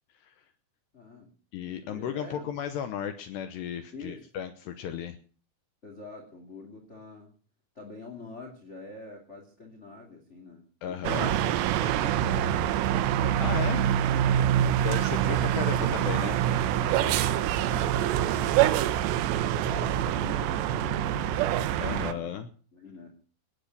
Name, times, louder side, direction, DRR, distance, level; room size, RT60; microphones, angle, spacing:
voice 1, 0.9-1.3 1.8-2.5 3.9-4.2 4.6-4.7 5.8-7.3 7.7-13.2 14.4-14.8 16.8-19.1 19.5-22.3 22.7-23.1, left 3 dB, 20° left, 1 dB, 1.9 m, -45 dB
voice 2, 1.5-5.2 10.8-11.3 13.4-13.9 14.8-16.5 21.8-22.5, left 9 dB, 80° left, 9 dB, 2.6 m, -35 dB
sound 1, 11.0-22.1, right 11 dB, 75° right, 2.7 m, -25 dB
19.0 x 8.6 x 6.7 m, 0.41 s
omnidirectional pair, 5.8 m